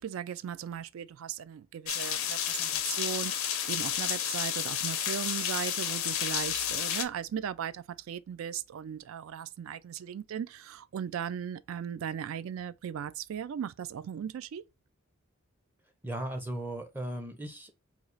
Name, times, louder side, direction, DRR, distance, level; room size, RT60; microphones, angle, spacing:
voice 1, 0.0-14.6, right 8 dB, 75° right, 0.3 m, -37 dB
sound 1, 1.9-7.0, left 9 dB, 85° left, 0.6 m, -31 dB
voice 2, 16.0-17.9, right 1 dB, 10° right, 0.5 m, -37 dB
3.1 x 2.4 x 3.8 m
head